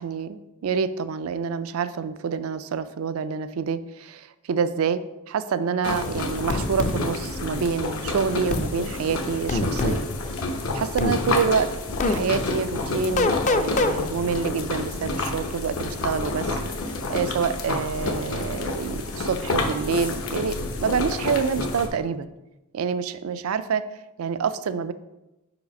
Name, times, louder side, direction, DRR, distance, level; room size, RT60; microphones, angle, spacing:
voice 1, 0.0-5.0 5.3-10.1 10.7-11.7 12.0-16.6 17.1-20.6 20.8-22.3 22.7-23.8 24.2-24.9, right 6 dB, 80° right, 13 dB, 0.4 m, -27 dB
sound 1, 5.8-21.9, left 2 dB, 80° left, 0.9 m, -29 dB
sound 2, 6.5-7.0 8.5-8.7 9.5-10.0 11.0-11.2 12.0-12.2 13.2-13.9, left 2 dB, 35° left, 0.4 m, -23 dB
4.9 x 4.9 x 5.2 m, 0.99 s
head